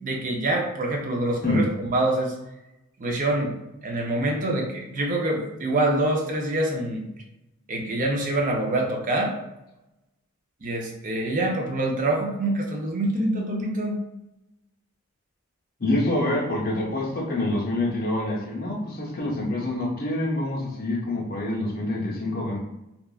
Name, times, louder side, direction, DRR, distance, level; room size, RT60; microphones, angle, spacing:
voice 1, 0.0-1.6 1.9-2.3 3.0-3.5 3.8-7.0 7.7-9.4 10.6-14.0, right 1 dB, 35° right, 0 dB, 0.4 m, -25 dB
voice 2, 15.8-22.6, left 1 dB, 45° left, -4 dB, 0.6 m, -26 dB
2.8 x 2.3 x 2.3 m, 0.90 s
head